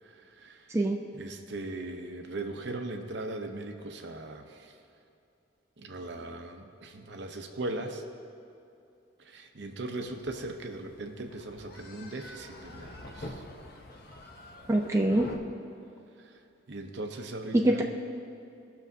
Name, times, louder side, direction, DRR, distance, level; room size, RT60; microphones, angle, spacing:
voice 1, 0.0-0.8 1.1-4.8 5.8-8.0 9.2-13.4 16.2-16.4 16.7-17.8, right 2 dB, 60° right, 5 dB, 0.7 m, -39 dB
sound 1, 10.0-15.4, left 1 dB, 50° left, 0.8 m, -45 dB
voice 2, 14.7-15.3 17.5-17.8, right 1 dB, 15° right, 1 dB, 0.4 m, -24 dB
17.5 x 6.1 x 2.7 m, 2.7 s
head